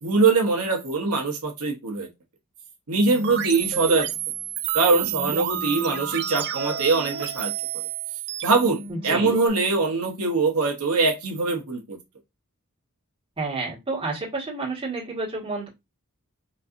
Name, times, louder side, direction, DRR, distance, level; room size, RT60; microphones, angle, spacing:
voice 1, 0.0-2.1 2.9-4.1 4.7-7.5 8.4-12.0, right 3 dB, 80° right, 0.8 m, -22 dB
sound 1, 3.1-9.5, right 9 dB, 50° right, 0.4 m, -30 dB
voice 2, 8.9-9.3 13.4-15.7, right 3 dB, 25° right, 1.4 m, -30 dB
4.0 x 2.6 x 2.4 m
head